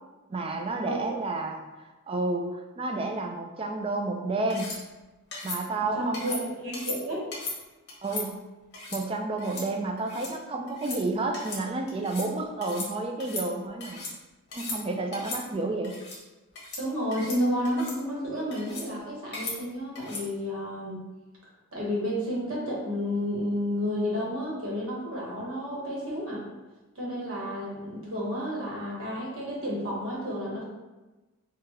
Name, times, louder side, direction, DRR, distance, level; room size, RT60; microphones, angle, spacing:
voice 1, 0.3-1.6 2.1-4.7 5.4-6.4 8.0-8.4 8.9-14.0 14.5-16.0, right 2 dB, 25° right, 4 dB, 0.3 m, -30 dB
sound 1, 4.5-4.8 5.3-5.6 6.1-6.4 6.7-7.0 7.3-7.6 7.9-8.3 8.7-9.0 9.4-9.7 10.0-10.3 10.7-11.0 11.3-11.6 11.9-12.3 12.6-12.9 13.2-14.1 14.5-14.8 15.1-15.4 15.8-16.2 16.6-16.8 17.1-17.4 17.7-18.0 18.5-18.9 19.3-19.6 20.0-20.2, left 3 dB, 50° left, 1.0 m, -37 dB
voice 2, 5.9-7.3 16.8-21.1 21.7-26.4 26.9-30.6, equal, 65° right, -5 dB, 1.2 m, -31 dB
4.6 x 2.4 x 2.9 m, 1.1 s
head